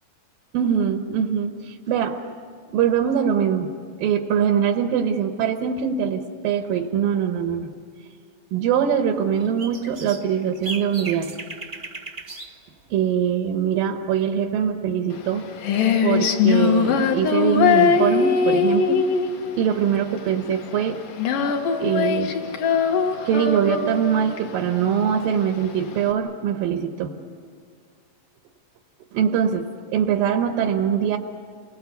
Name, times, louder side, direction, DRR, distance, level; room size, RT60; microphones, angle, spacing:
voice 1, 0.5-2.2 2.7-3.7 4.0-7.7 8.5-11.4 12.9-15.4 16.0-19.1 19.6-21.0 21.8-22.3 23.3-27.1 29.1-31.2, right 8 dB, 85° right, 4 dB, 2.9 m, -23 dB
sound 1, 9.2-12.6 12.9-13.0 15.9-16.1, right 3 dB, 35° right, 0.9 m, -37 dB
Female singing, 15.1-26.1, left 6 dB, 75° left, 3.2 m, -21 dB
29.0 x 21.0 x 8.3 m, 2.1 s
omnidirectional pair, 3.9 m